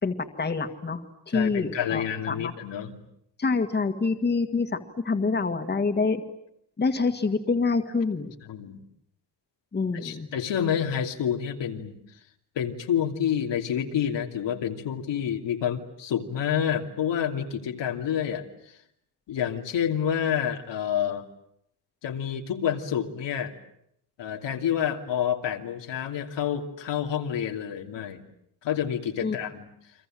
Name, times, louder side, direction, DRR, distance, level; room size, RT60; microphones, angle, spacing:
voice 1, 0.0-2.5 3.4-4.8 5.0-6.2 6.8-8.3 9.7-10.3 29.2-29.4, left 4 dB, 25° left, 6 dB, 1.9 m, -26 dB
voice 2, 1.3-3.0 8.5-8.8 9.9-12.0 12.6-18.7 19.3-21.2 22.0-23.5 24.2-28.2 28.6-29.7, left 9 dB, 90° left, 3 dB, 2.8 m, -28 dB
30.0 x 24.5 x 7.7 m, 0.74 s
wide cardioid pair, 170°, 42 cm